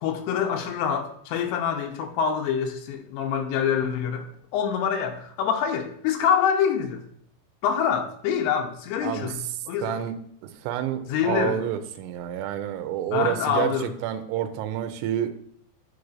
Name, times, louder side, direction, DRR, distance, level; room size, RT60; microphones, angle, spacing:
voice 1, 0.0-4.3 4.5-7.0 7.6-10.0 11.1-11.6 13.1-13.9, left 7 dB, 80° left, 4 dB, 2.7 m, -26 dB
voice 2, 9.8-10.1 10.4-15.3, right 11 dB, 85° right, 8 dB, 2.6 m, -29 dB
9.5 x 4.7 x 2.5 m, 0.67 s
omnidirectional pair, 5.0 m